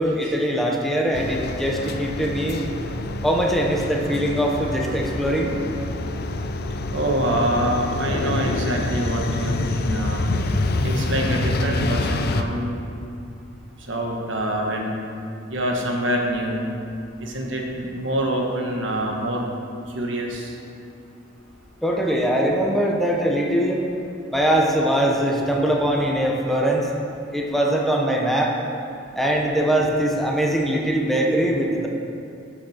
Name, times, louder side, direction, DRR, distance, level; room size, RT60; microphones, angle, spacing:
voice 1, 0.0-2.6 3.2-5.6 21.8-23.8 24.3-26.8 27.3-28.5 29.2-31.9, right 1 dB, ahead, -1 dB, 0.9 m, -22 dB
sound 1, 1.1-12.4, left 2 dB, 55° left, 0.6 m, -26 dB
voice 2, 6.9-10.3 10.8-12.7 13.9-14.9 15.5-16.6 17.2-19.5 19.9-20.5, right 1 dB, 75° right, 0 dB, 1.4 m, -25 dB
12.0 x 6.4 x 5.0 m, 2.5 s
head